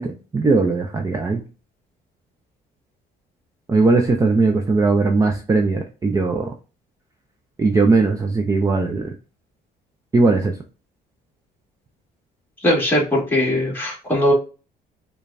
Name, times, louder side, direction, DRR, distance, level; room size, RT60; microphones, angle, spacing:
voice 1, 0.0-1.4 3.7-6.5 7.6-9.1 10.1-10.6, right 3 dB, 20° right, 3 dB, 0.5 m, -19 dB
voice 2, 12.6-14.3, left 1 dB, 10° left, -3 dB, 1.9 m, -19 dB
5.0 x 2.3 x 2.5 m, 0.33 s
cardioid pair, 110°, 17 cm